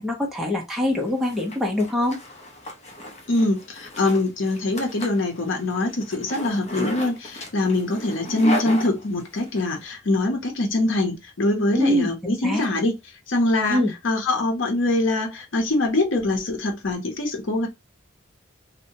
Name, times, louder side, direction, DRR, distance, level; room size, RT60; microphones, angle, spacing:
voice 1, 0.0-2.2 11.7-12.6 13.7-13.9, left 1 dB, ahead, 0.7 m, -24 dB
Zipper (clothing), 1.0-9.6, left 1 dB, 35° left, 0.7 m, -35 dB
voice 2, 3.3-13.0 13.3-17.7, left 2 dB, 70° left, 0.8 m, -23 dB
2.7 x 2.1 x 2.7 m
head